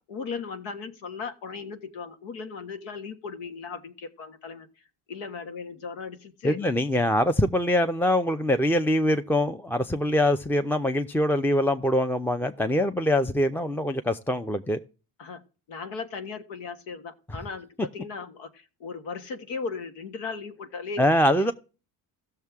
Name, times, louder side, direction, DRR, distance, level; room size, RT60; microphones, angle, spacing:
voice 1, 0.1-6.6 6.9-7.1 15.2-15.4 15.7-21.5, left 5 dB, 85° left, 1.5 m, -37 dB
voice 2, 6.4-14.8 21.0-21.5, left 1 dB, 5° left, 0.5 m, -23 dB
15.5 x 6.7 x 3.5 m
supercardioid pair, 75°, 43 cm